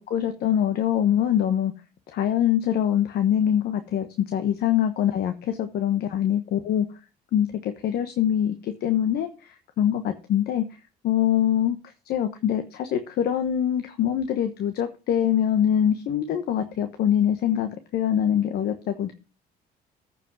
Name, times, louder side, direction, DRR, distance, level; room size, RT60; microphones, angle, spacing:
voice 1, 0.0-1.7 2.1-6.9 7.3-10.6 11.0-11.8 12.1-19.1, left 10 dB, 70° left, 1.2 m, -24 dB
14.5 x 5.3 x 4.8 m
cardioid pair, 110°, 17 cm